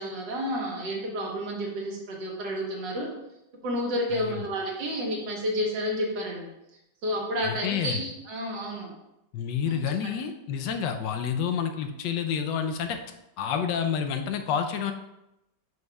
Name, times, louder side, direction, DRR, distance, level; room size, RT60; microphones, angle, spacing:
voice 1, 0.0-3.1 3.6-6.5 7.0-8.9 9.7-9.8, equal, 85° right, -1 dB, 1.8 m, -30 dB
voice 2, 4.1-4.5 7.4-8.0 9.3-13.0 13.4-14.9, left 7 dB, 85° left, 6 dB, 1.3 m, -29 dB
7.8 x 5.2 x 2.3 m, 0.89 s
omnidirectional pair, 1.9 m